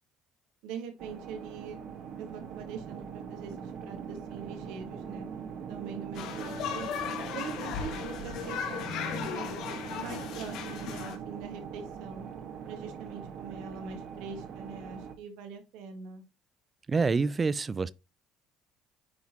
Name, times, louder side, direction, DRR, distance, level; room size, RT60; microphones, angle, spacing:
voice 1, 0.6-1.8 2.2-5.3 5.7-6.9 7.2-9.5 10.0-12.2 12.6-16.2, right 6 dB, 75° right, 1.6 m, -43 dB
sound 1, 1.0-15.1, right 7 dB, 60° right, 1.4 m, -42 dB
sound 2, 6.1-11.2, left 7 dB, 70° left, 1.6 m, -36 dB
voice 2, 16.9-17.9, right 4 dB, 30° right, 0.5 m, -27 dB
9.6 x 4.0 x 2.9 m
supercardioid pair, 75°, 0 cm